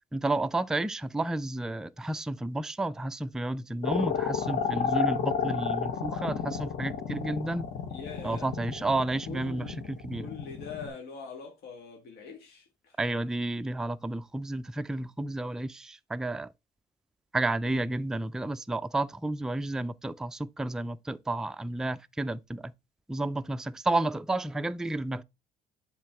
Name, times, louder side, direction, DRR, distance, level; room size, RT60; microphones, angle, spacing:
voice 1, 0.1-7.7 8.2-10.3 13.0-16.5 17.3-22.7 23.1-25.2, right 2 dB, 5° right, 0.3 m, -31 dB
sound 1, 3.8-10.9, left 8 dB, 50° left, 1.2 m, -31 dB
voice 2, 7.9-8.5 9.3-9.7 10.2-13.0, left 5 dB, 75° left, 1.7 m, -43 dB
7.4 x 4.1 x 3.5 m
cardioid pair, 110°, 17 cm